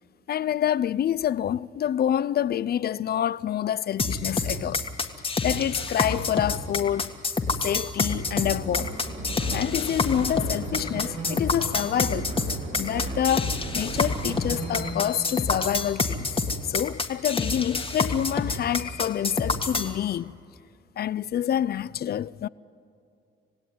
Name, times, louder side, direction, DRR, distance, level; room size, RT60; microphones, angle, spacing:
voice 1, 0.3-4.8 5.4-7.2 7.6-9.0 9.5-12.3 12.8-20.3 21.0-22.5, left 10 dB, 55° left, 0.5 m, -27 dB
sound 1, 4.0-19.9, left 3 dB, 30° left, 1.8 m, -27 dB
sound 2, 8.2-15.3, right 2 dB, 75° right, 7.7 m, -35 dB
27.5 x 16.5 x 9.5 m
cardioid pair, 90°, 20 cm